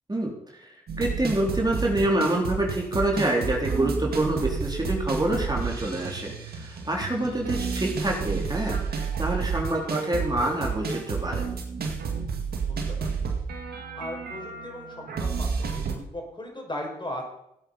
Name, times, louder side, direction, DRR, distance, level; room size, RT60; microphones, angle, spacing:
voice 1, 0.1-0.7 1.0-11.5, right 1 dB, 25° right, -1 dB, 3.7 m, -27 dB
sound 1, 0.9-15.9, right 5 dB, 70° right, 2.0 m, -31 dB
voice 2, 12.6-13.1 14.0-17.2, left 1 dB, 30° left, 1 dB, 5.4 m, -37 dB
15.5 x 8.6 x 5.7 m, 0.79 s
supercardioid pair, 40°, 16 cm